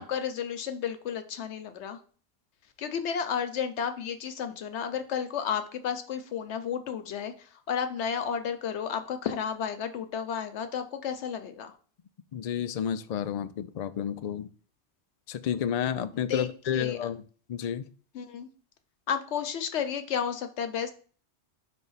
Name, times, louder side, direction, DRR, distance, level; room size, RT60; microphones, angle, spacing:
voice 1, 0.0-2.0 2.8-11.7 16.1-17.0 18.1-18.5 19.1-20.9, left 7 dB, 85° left, 9 dB, 1.0 m, -32 dB
voice 2, 12.3-14.5 15.3-17.2 17.5-17.9, left 9 dB, 60° left, 11 dB, 0.4 m, -31 dB
5.2 x 3.3 x 5.6 m, 0.41 s
omnidirectional pair, 1.1 m